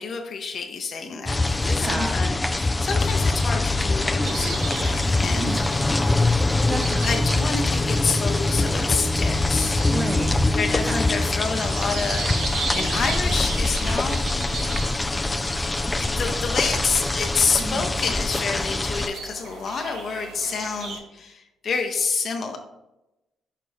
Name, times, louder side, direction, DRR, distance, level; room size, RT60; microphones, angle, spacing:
voice 1, 0.0-5.7 7.0-9.9 10.5-14.2 16.0-22.6, left 5 dB, 55° left, 4 dB, 0.8 m, -28 dB
sound 1, 1.3-19.1, left 2 dB, 15° left, 0.3 m, -23 dB
voice 2, 1.6-2.2 5.3-5.8 6.7-7.2 9.9-10.3 10.8-11.0 17.6-17.9, right 2 dB, 30° right, 4 dB, 0.6 m, -31 dB
sound 2, 4.2-21.0, right 4 dB, 80° right, 1.4 m, -37 dB
sound 3, 4.3-10.9, equal, 45° right, 1.5 m, -37 dB
6.6 x 4.1 x 3.6 m, 0.93 s
cardioid pair, 90°, 0 cm